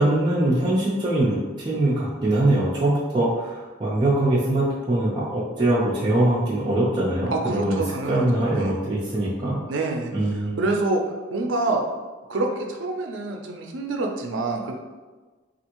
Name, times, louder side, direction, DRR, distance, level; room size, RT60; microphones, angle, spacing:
voice 1, 0.0-7.8 8.1-9.6 10.1-10.6, right 1 dB, 25° right, -8 dB, 0.4 m, -22 dB
voice 2, 7.3-8.8 9.7-10.1 10.6-11.0 11.3-11.8 12.3-14.8, right 2 dB, 85° right, 3 dB, 0.5 m, -26 dB
3.4 x 2.4 x 2.9 m, 1.3 s
head